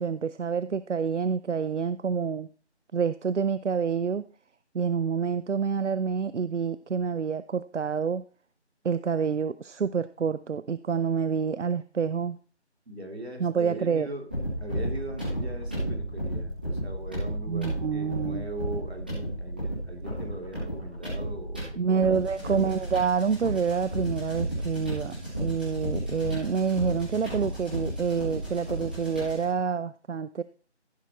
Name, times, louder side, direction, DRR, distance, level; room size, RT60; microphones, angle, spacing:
voice 1, 0.0-2.5 2.9-4.3 4.7-8.2 8.8-12.4 13.4-14.1 17.5-18.5 21.8-30.4, right 6 dB, 85° right, 15 dB, 0.7 m, -27 dB
voice 2, 12.9-14.2 14.6-22.7, right 2 dB, 60° right, 3 dB, 3.2 m, -40 dB
sound 1, 14.3-29.5, right 1 dB, 10° right, 1.9 m, -33 dB
15.0 x 8.3 x 3.1 m, 0.39 s
figure-of-eight pair, 175°, 35 cm